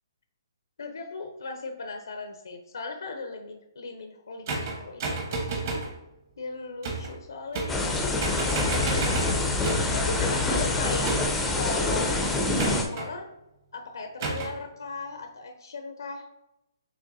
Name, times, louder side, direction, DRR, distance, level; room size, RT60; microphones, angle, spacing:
voice 1, 0.8-5.5 6.4-8.3 8.7-9.1 9.9-11.1 11.5-13.3 13.7-16.3, left 3 dB, 85° left, 5 dB, 0.6 m, -37 dB
sound 1, 4.5-5.9 6.8-7.2 7.5-7.9 8.2-10.0 11.0-11.5 12.6-13.1 14.2-14.6, right 3 dB, 40° right, 0.9 m, -31 dB
sound 2, 7.7-12.8, left 2 dB, 5° left, 0.4 m, -26 dB
6.3 x 3.3 x 2.6 m, 0.90 s
hypercardioid pair, 170°, 2 cm